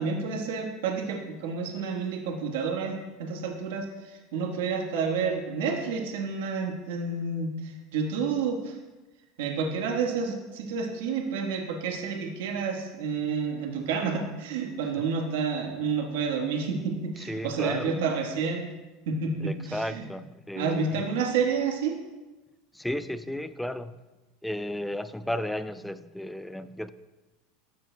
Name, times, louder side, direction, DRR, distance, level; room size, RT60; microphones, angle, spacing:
voice 1, 0.0-8.8 9.4-18.7 19.1-20.1 20.5-22.0, right 5 dB, 85° right, 1 dB, 1.3 m, -30 dB
voice 2, 17.2-18.1 19.4-21.0 22.7-24.0 24.4-26.9, left 1 dB, ahead, 13 dB, 0.3 m, -34 dB
13.5 x 7.5 x 2.2 m, 1.1 s
supercardioid pair, 145°, 0 cm